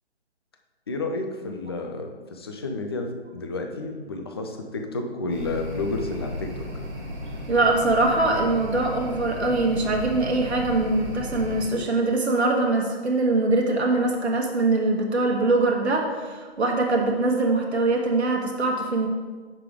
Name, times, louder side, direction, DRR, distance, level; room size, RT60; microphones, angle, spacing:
voice 1, 0.9-6.7, left 2 dB, 25° left, 4 dB, 0.4 m, -31 dB
sound 1, 5.3-11.7, left 1 dB, 45° right, 1.7 m, -35 dB
voice 2, 7.5-19.1, right 2 dB, 75° right, 0 dB, 1.2 m, -23 dB
5.9 x 4.8 x 4.7 m, 1.4 s
figure-of-eight pair, 145°, 33 cm